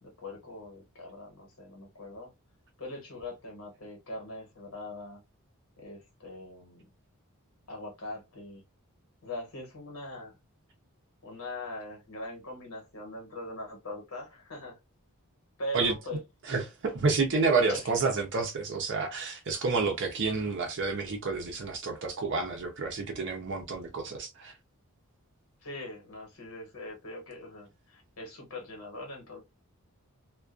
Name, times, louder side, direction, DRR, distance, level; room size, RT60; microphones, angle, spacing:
voice 1, 0.0-2.3 2.8-5.2 5.8-6.9 7.7-8.6 9.2-10.4 11.2-14.8 15.6-16.2 17.5-17.9 25.6-29.4, left 1 dB, 80° left, 1.0 m, -41 dB
voice 2, 16.5-24.5, right 4 dB, 55° right, 0.5 m, -29 dB
2.4 x 2.2 x 2.4 m
head